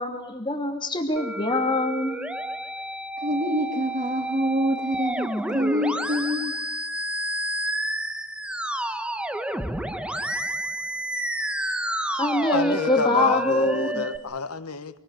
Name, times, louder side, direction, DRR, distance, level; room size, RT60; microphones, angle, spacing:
voice 1, 0.0-2.2 12.2-14.1, left 2 dB, 20° left, 2.9 m, -24 dB
Musical instrument, 1.2-14.2, right 1 dB, 5° right, 1.0 m, -30 dB
voice 2, 3.2-6.5, equal, 35° right, 1.8 m, -26 dB
voice 3, 12.5-15.0, left 4 dB, 90° left, 1.3 m, -29 dB
26.0 x 24.0 x 6.6 m
head